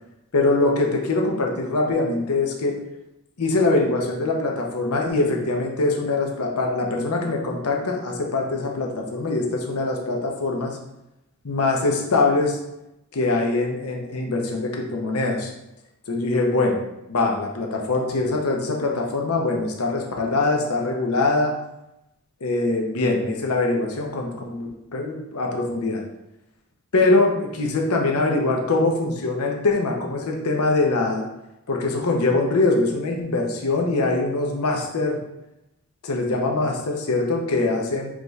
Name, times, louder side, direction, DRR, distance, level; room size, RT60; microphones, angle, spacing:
voice 1, 0.3-2.8 3.4-10.8 11.4-12.6 13.1-15.5 16.1-16.8 17.1-21.5 22.4-26.0 26.9-31.3 31.7-35.2 36.0-38.1, left 2 dB, 85° left, 1 dB, 0.8 m, -23 dB
4.8 x 2.4 x 4.0 m, 0.89 s
head